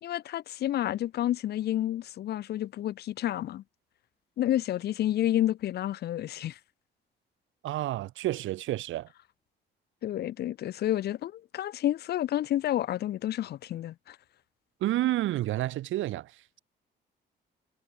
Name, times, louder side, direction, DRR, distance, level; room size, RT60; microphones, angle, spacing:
voice 1, 0.0-3.6 4.4-6.6 10.0-14.2, left 12 dB, 55° left, 0.4 m, -30 dB
voice 2, 7.6-9.1 14.8-16.3, right 15 dB, 80° right, 0.8 m, -29 dB
cardioid pair, 90°, 20 cm